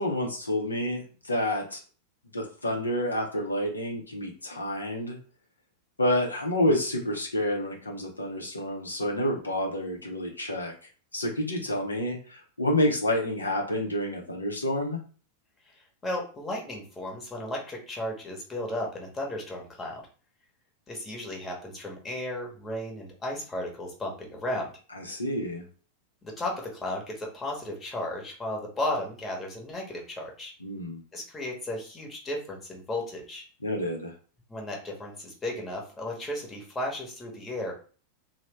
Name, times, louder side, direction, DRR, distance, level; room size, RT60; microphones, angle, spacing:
voice 1, 0.0-1.8 2.3-5.2 6.0-10.7 11.1-15.0 24.9-25.6 30.6-31.0 33.6-34.1, left 1 dB, 80° left, 0 dB, 0.6 m, -29 dB
voice 2, 15.7-20.1 20.9-24.7 26.2-30.5 31.1-33.4 34.5-37.7, left 1 dB, 15° left, -1 dB, 1.0 m, -34 dB
3.0 x 2.0 x 3.2 m, 0.39 s
figure-of-eight pair, 90°, 0 cm